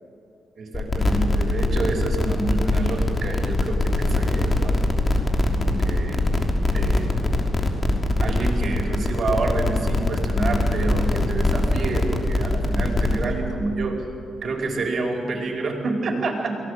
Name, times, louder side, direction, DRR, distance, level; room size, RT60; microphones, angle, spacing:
voice 1, 0.6-4.8 5.5-6.3 6.7-7.2 8.2-14.0 14.4-16.5, right 3 dB, 60° right, 2 dB, 5.0 m, -28 dB
sound 1, 0.7-13.3, left 2 dB, 35° left, 3.3 m, -22 dB
23.5 x 17.5 x 8.3 m, 2.7 s
cardioid pair, 65°, 0 cm